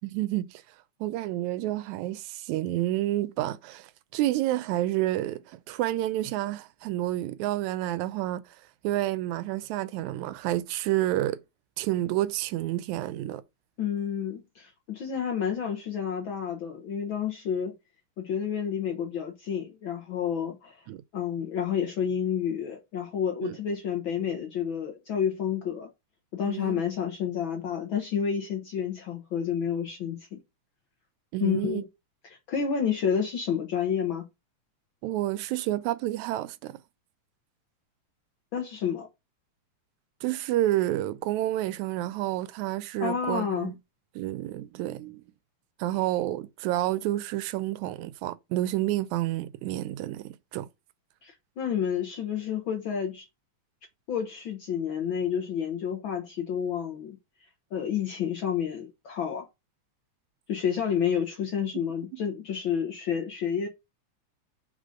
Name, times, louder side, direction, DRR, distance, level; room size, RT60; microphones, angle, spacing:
voice 1, 0.0-0.6 1.0-8.4 8.8-11.4 11.8-13.4 20.9-21.0 23.4-23.6 26.4-26.8 31.3-31.8 35.0-36.8 40.2-43.8 44.2-45.2 45.8-50.7 62.1-62.2, right 15 dB, 85° right, 1.9 m, -29 dB
voice 2, 13.8-17.7 18.2-20.9 21.1-25.9 26.3-30.4 31.4-31.9 32.2-34.2 38.5-39.1 43.0-43.7 51.2-53.3 54.1-57.2 57.7-59.4 60.5-63.7, left 8 dB, 65° left, 1.3 m, -30 dB
5.1 x 4.0 x 5.0 m
omnidirectional pair, 3.3 m